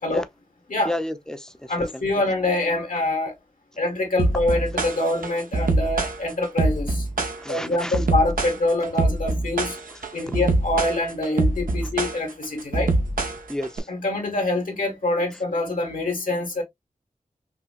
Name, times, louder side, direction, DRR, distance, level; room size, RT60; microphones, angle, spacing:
voice 1, 0.8-2.3 7.3-8.1 9.9-10.4 11.8-11.9 13.5-13.9 15.3-15.4, left 1 dB, 5° left, 0.7 m, -33 dB
voice 2, 1.7-3.3 3.8-7.1 7.5-9.8 10.1-12.9 13.9-16.6, left 2 dB, 75° left, 1.7 m, -25 dB
sound 1, 4.2-13.8, right 2 dB, 80° right, 0.7 m, -24 dB
5.7 x 2.2 x 2.4 m
wide cardioid pair, 70°, 14 cm